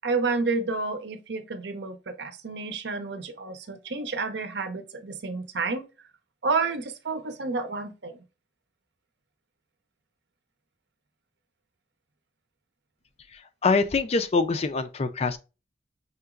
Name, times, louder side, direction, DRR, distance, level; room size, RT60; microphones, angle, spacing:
voice 1, 0.0-5.8 6.4-8.2, right 4 dB, 65° right, 0.7 m, -30 dB
voice 2, 13.6-15.4, left 4 dB, 35° left, 0.4 m, -24 dB
5.6 x 2.9 x 2.4 m
head